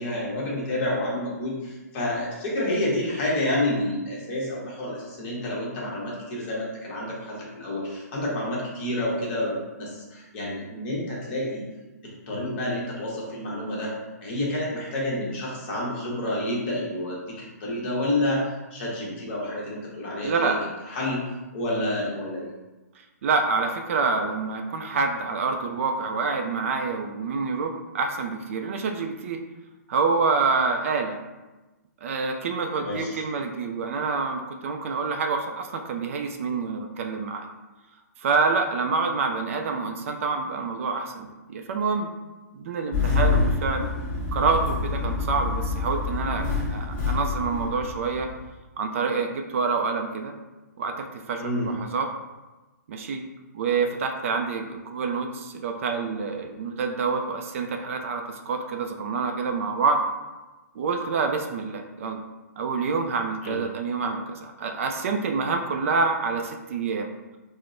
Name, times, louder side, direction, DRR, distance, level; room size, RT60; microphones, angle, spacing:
voice 1, 0.0-11.6 12.0-13.9 14.2-18.4 18.7-20.6 20.9-21.2 21.5-22.5 32.8-33.2 51.4-51.7 63.4-63.6, left 1 dB, 40° left, -4 dB, 1.0 m, -29 dB
voice 2, 20.2-20.6 23.2-29.4 29.9-31.2 32.0-37.5 38.2-42.1 42.5-43.9 44.3-48.3 48.8-50.3 50.8-52.1 52.9-53.2 53.5-60.0 60.8-62.2 62.6-67.1, right 4 dB, 50° right, 4 dB, 0.4 m, -27 dB
Engine starting, 42.9-48.5, left 4 dB, 15° left, 1.1 m, -27 dB
4.4 x 2.0 x 2.5 m, 1.1 s
hypercardioid pair, 155°, 9 cm